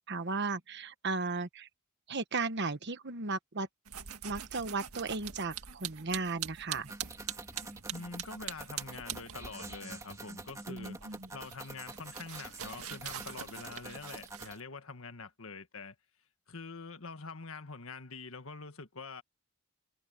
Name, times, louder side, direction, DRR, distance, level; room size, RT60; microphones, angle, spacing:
voice 1, 0.1-1.7 2.1-3.7 4.2-6.9 10.7-11.3, right 3 dB, 50° right, 1.2 m, -35 dB
sound 1, 3.9-9.7 10.0-14.6, right 10 dB, 90° right, 1.8 m, -44 dB
sound 2, 6.8-14.6, right 2 dB, 15° right, 1.9 m, -47 dB
voice 2, 7.9-11.0 11.3-15.9 16.5-19.2, left 4 dB, 70° left, 1.6 m, -45 dB
head